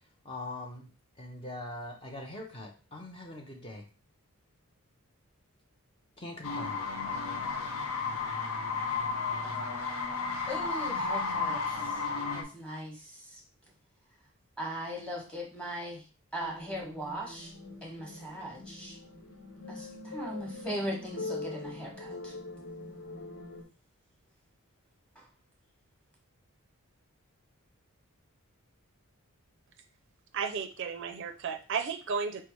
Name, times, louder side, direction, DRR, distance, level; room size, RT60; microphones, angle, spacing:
voice 1, 0.2-0.9 1.2-3.8 6.2-6.8, left 1 dB, 25° left, 1 dB, 0.5 m, -42 dB
sound 1, 6.4-12.4, left 4 dB, 85° left, 0.8 m, -33 dB
voice 2, 10.5-12.0 12.3-13.4 14.6-16.0 16.3-17.5 17.8-19.0 19.7-22.3 25.2-25.3, equal, 5° left, -2 dB, 1.1 m, -39 dB
sound 2, 16.4-23.6, left 3 dB, 65° left, 1.4 m, -43 dB
voice 3, 30.3-32.4, right 6 dB, 55° right, 8 dB, 0.4 m, -33 dB
4.5 x 3.3 x 3.0 m, 0.35 s
head